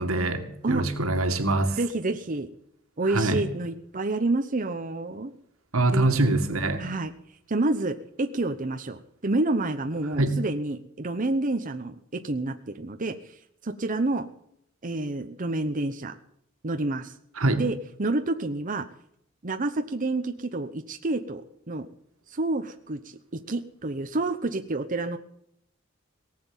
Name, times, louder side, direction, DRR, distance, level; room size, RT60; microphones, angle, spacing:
voice 1, 0.0-1.8 3.1-3.4 5.7-6.8 10.2-10.4 17.4-17.6, right 2 dB, 90° right, 7 dB, 2.1 m, -24 dB
voice 2, 1.8-2.5 3.0-5.3 5.9-6.1 6.8-7.1 7.5-13.2 13.6-14.3 14.8-16.1 16.6-17.1 17.5-18.9 19.4-21.9 22.3-25.2, right 2 dB, 40° right, 6 dB, 0.9 m, -29 dB
18.5 x 7.7 x 8.9 m, 0.72 s
head